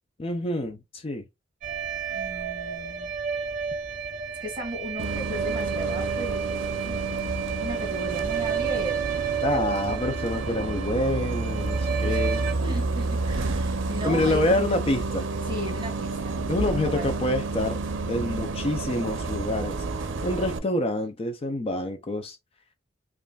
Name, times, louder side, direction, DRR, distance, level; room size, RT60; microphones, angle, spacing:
voice 1, 0.2-1.2 9.4-12.4 14.0-15.3 16.5-17.8 18.1-19.8 20.2-22.4, left 1 dB, 30° left, 0.5 m, -27 dB
sound 1, 1.6-12.5, right 7 dB, 40° right, 1.0 m, -31 dB
voice 2, 2.1-3.2 4.4-9.4 11.9-14.7 15.4-16.4 16.7-17.1, equal, 25° right, 1.7 m, -37 dB
Bus, 5.0-20.6, right 3 dB, 80° right, 0.5 m, -30 dB
5.3 x 2.5 x 2.3 m
head